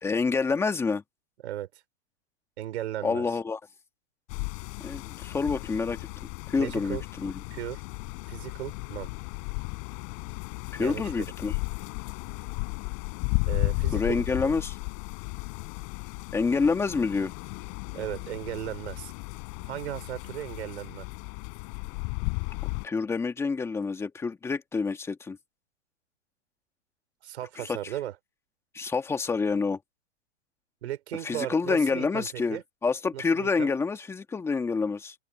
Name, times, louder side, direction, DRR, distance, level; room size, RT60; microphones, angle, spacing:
voice 1, 0.0-1.0 3.0-3.6 4.8-6.1 6.5-7.3 10.7-11.5 13.9-14.8 16.3-17.3 22.8-25.4 27.6-27.9 28.7-29.8 31.2-35.1, left 4 dB, 5° left, 1.7 m, -27 dB
voice 2, 2.6-3.3 6.6-7.0 7.5-7.8 8.3-9.1 10.8-11.3 13.5-14.5 17.9-19.1 19.7-21.1 27.2-28.1 30.8-32.6 33.1-33.7, right 12 dB, 60° right, 3.8 m, -36 dB
sound 1, 4.3-22.9, left 40 dB or more, 35° left, 4.9 m, -34 dB
open air
hypercardioid pair, 160°, 36 cm